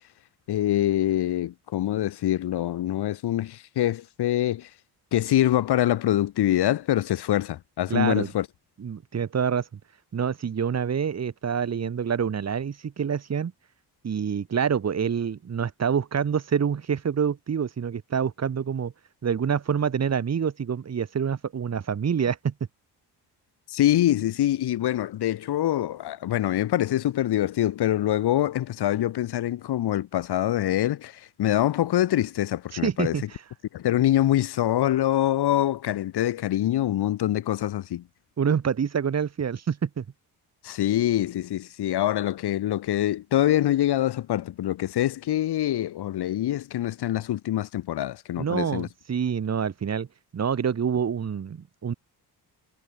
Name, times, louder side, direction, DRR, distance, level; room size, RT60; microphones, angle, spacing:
voice 1, 0.5-4.7 5.1-8.5 23.7-33.1 33.7-38.0 40.6-48.9, left 13 dB, 75° left, 2.6 m, -25 dB
voice 2, 7.9-8.3 8.8-9.8 10.1-13.5 14.0-18.9 19.2-22.5 32.7-33.2 38.4-40.0 48.4-50.1 50.3-51.9, right 7 dB, 40° right, 5.0 m, -26 dB
cardioid pair, 155°, 40 cm